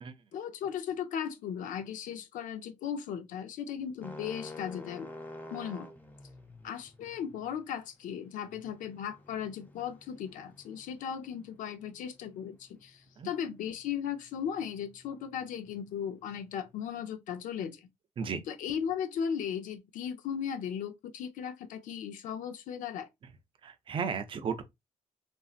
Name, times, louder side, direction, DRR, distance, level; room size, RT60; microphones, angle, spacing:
voice 1, 0.3-5.1 5.5-5.9 6.6-17.9 18.5-23.1, left 8 dB, 75° left, 0.5 m, -37 dB
sound 1, 4.0-16.7, left 2 dB, 15° left, 0.5 m, -51 dB
voice 2, 23.6-24.6, right 6 dB, 40° right, 0.4 m, -34 dB
3.1 x 2.6 x 2.4 m
cardioid pair, 145°, 14 cm